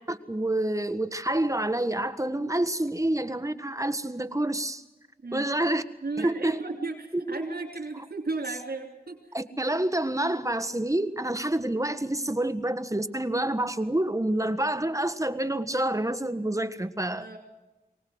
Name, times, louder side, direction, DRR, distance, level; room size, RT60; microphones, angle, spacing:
voice 1, 0.1-4.8 5.3-5.8 6.2-7.4 9.3-17.2, right 1 dB, 20° right, 11 dB, 1.5 m, -28 dB
voice 2, 6.0-9.2 17.2-17.4, right 3 dB, 90° right, 1 dB, 3.2 m, -34 dB
24.0 x 18.5 x 8.0 m, 1.0 s
wide cardioid pair, 55°, 16 cm